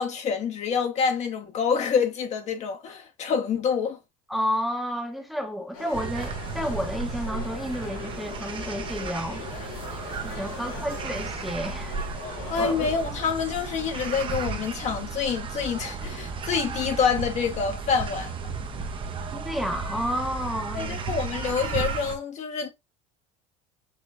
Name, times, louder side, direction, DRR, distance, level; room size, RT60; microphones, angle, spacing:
voice 1, 0.0-4.0 12.5-18.5 20.7-22.7, left 6 dB, 40° left, 1.1 m, -27 dB
voice 2, 4.3-9.4 10.2-11.9 12.6-12.9 19.3-21.0, equal, ahead, 1.0 m, -31 dB
sound 1, 5.7-12.7, left 5 dB, 85° left, 3.5 m, -41 dB
sound 2, 5.9-22.2, right 4 dB, 30° right, 0.9 m, -34 dB
6.6 x 3.0 x 2.5 m
supercardioid pair, 105°, 17 cm